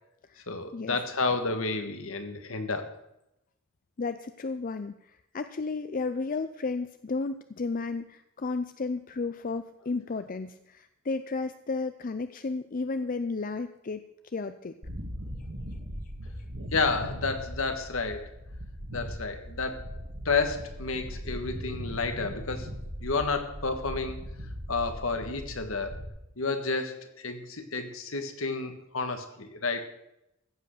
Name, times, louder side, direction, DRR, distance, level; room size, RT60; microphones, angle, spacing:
voice 1, 0.5-2.9 16.7-18.3 18.9-19.8 20.2-22.7 23.0-24.2 24.7-26.0 26.4-29.8, left 4 dB, 65° left, 7 dB, 1.6 m, -30 dB
voice 2, 4.0-14.0 14.3-14.7, left 3 dB, 40° left, 10 dB, 0.5 m, -33 dB
sound 1, 14.8-26.1, equal, 80° right, 2.9 m, -39 dB
14.5 x 7.9 x 6.6 m, 0.85 s
head